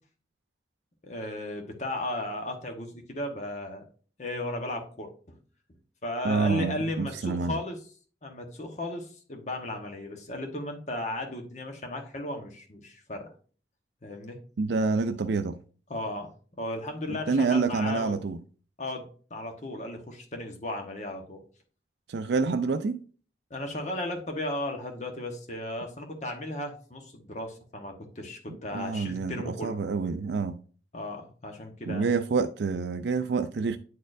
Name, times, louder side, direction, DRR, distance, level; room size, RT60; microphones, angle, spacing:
voice 1, 1.0-3.8 4.2-5.4 6.0-7.8 8.2-13.3 14.0-14.4 15.9-18.2 18.8-21.4 23.5-29.8 30.9-32.1, left 1 dB, 40° left, 1.1 m, -35 dB
voice 2, 6.2-7.6 14.6-15.6 17.3-18.4 22.1-23.0 28.7-30.6 31.9-33.8, right 4 dB, 70° right, 0.4 m, -27 dB
9.2 x 4.3 x 2.5 m
head